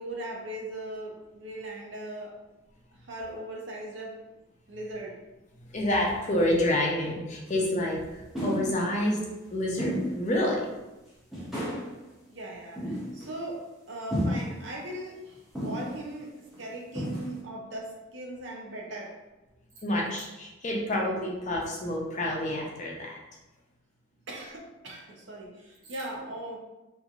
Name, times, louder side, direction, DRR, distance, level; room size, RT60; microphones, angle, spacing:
voice 1, 0.0-2.4 2.9-4.2 4.7-5.2 12.3-19.2 24.3-26.6, right 1 dB, 60° right, -1 dB, 0.6 m, -39 dB
voice 2, 5.7-9.2 9.5-10.6 19.8-23.2, left 1 dB, 35° left, -2 dB, 0.5 m, -28 dB
sound 1, 7.5-7.6 8.3-8.7 9.8-10.2 10.6-10.7 11.3-11.9 12.8-13.4 14.1-14.6 15.5-16.0 16.5-16.6 16.9-17.4, equal, ahead, 0.7 m, -31 dB
3.0 x 2.5 x 2.4 m, 1.0 s
head